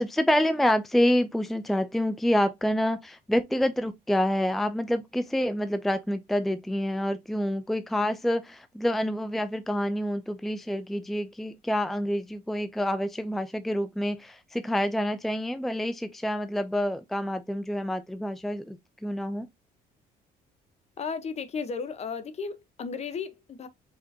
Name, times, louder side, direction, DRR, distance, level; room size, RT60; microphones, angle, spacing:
voice 1, 0.0-19.5, equal, ahead, 0.5 m, -27 dB
voice 2, 21.0-23.7, left 5 dB, 40° left, 1.0 m, -34 dB
5.1 x 3.7 x 2.8 m
cardioid pair, 110°, 17 cm